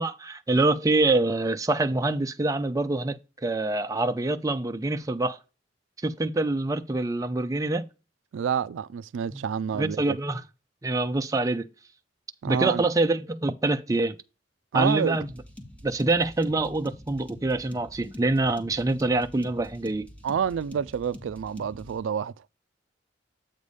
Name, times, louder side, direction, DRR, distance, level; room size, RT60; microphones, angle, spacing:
voice 1, 0.0-5.4 6.0-7.9 9.3-9.4 9.7-10.4 10.8-11.7 12.5-14.2 14.7-15.3 15.8-20.1, right 2 dB, 20° right, 0.5 m, -25 dB
voice 2, 8.3-10.2 12.4-12.8 14.7-15.2 20.2-22.3, right 7 dB, 85° right, 0.3 m, -28 dB
sound 1, 15.1-22.0, left 1 dB, 5° left, 1.2 m, -46 dB
8.1 x 3.3 x 5.4 m
head